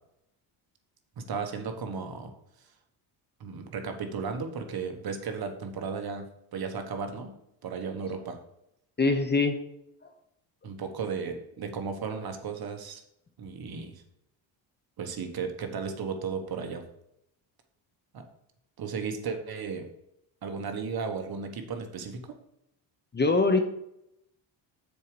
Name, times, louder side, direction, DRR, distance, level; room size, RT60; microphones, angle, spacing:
voice 1, 1.2-2.3 3.4-7.3 7.6-8.4 10.6-13.0 13.4-14.0 15.0-16.8 18.1-18.2 18.8-19.9 20.4-22.4, right 5 dB, 50° right, 5 dB, 1.4 m, -35 dB
voice 2, 9.0-9.6 23.1-23.6, left 3 dB, 20° left, 7 dB, 0.9 m, -23 dB
7.0 x 4.7 x 6.8 m, 0.80 s
cardioid pair, 110°, 46 cm